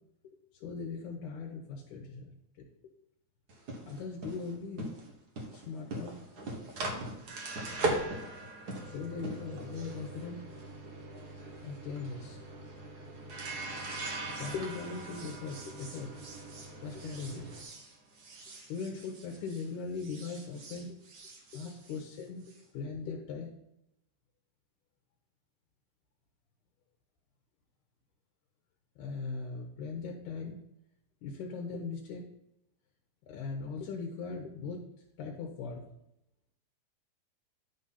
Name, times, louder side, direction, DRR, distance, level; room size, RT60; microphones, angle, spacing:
voice 1, 0.6-2.7 3.9-5.0 5.5-6.2 8.9-10.4 11.6-12.4 14.4-16.2 16.8-17.5 18.7-21.0 21.5-22.4 22.7-23.5 29.0-30.6 31.2-32.3 33.3-34.9 35.2-35.9, left 4 dB, 75° left, 0 dB, 2.4 m, -39 dB
sound 1, 3.5-19.7 20.0-22.6, right 2 dB, 60° right, 1.0 m, -40 dB
11.0 x 4.0 x 5.6 m, 0.84 s
omnidirectional pair, 3.7 m